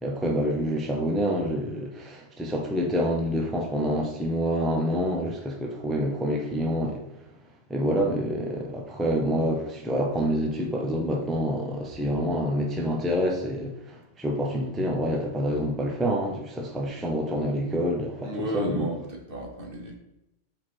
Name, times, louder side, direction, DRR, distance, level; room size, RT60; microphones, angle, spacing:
voice 1, 0.0-7.0 7.7-18.3 18.5-18.8, equal, ahead, 0 dB, 0.7 m, -27 dB
voice 2, 18.2-20.0, right 1 dB, 50° right, 1 dB, 1.2 m, -32 dB
4.6 x 4.5 x 4.5 m, 0.89 s
omnidirectional pair, 1.2 m